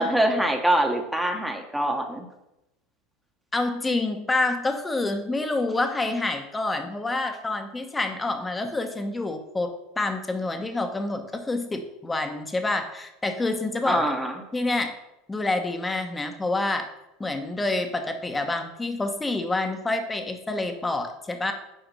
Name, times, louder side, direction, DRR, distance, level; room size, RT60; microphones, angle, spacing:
voice 1, 0.0-2.3 13.8-14.4, right 1 dB, 5° right, 3 dB, 1.3 m, -24 dB
voice 2, 3.5-14.1 14.5-14.9 15.3-16.8 17.2-21.5, left 2 dB, 15° left, 6 dB, 1.2 m, -27 dB
7.2 x 5.0 x 5.6 m, 0.89 s
supercardioid pair, 100°, 0 cm